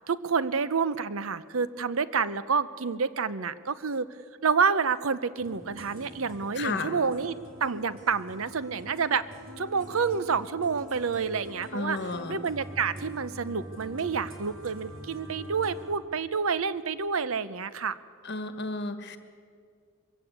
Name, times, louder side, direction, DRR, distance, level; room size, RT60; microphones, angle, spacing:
voice 1, 0.1-4.1 4.4-9.2 9.6-12.0 12.3-18.0, right 5 dB, 90° right, 15 dB, 0.7 m, -28 dB
sound 1, 5.4-15.9, equal, 70° right, 3.6 m, -44 dB
voice 2, 6.6-6.9 11.7-12.4 18.2-19.2, left 3 dB, 55° left, 9 dB, 1.5 m, -32 dB
22.5 x 16.0 x 8.2 m, 2.2 s
head